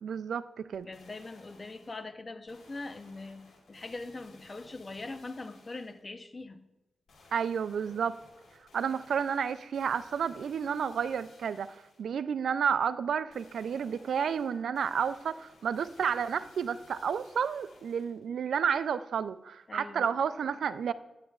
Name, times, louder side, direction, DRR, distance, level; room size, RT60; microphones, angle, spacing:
voice 1, 0.0-0.9 7.3-8.2 8.7-20.9, right 7 dB, 80° right, 15 dB, 0.3 m, -31 dB
sound 1, 0.7-2.0 2.5-6.1 7.1-12.1 13.3-18.3 18.7-18.8, left 3 dB, 80° left, 2.6 m, -59 dB
voice 2, 0.9-6.6 19.7-20.1, left 3 dB, 40° left, 10 dB, 0.7 m, -42 dB
10.0 x 9.5 x 2.4 m, 1.0 s
cardioid pair, 65°, 0 cm